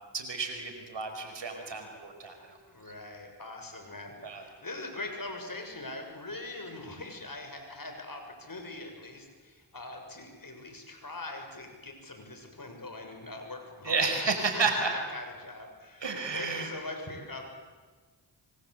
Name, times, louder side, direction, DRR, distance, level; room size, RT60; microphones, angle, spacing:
voice 1, 0.1-2.3 4.2-4.4 13.9-14.9 16.0-16.7, right 4 dB, 75° right, 5 dB, 5.3 m, -31 dB
voice 2, 2.7-14.3 14.6-17.5, left 2 dB, 50° left, 4 dB, 6.9 m, -42 dB
26.5 x 24.5 x 8.2 m, 1.4 s
cardioid pair, 45°, 43 cm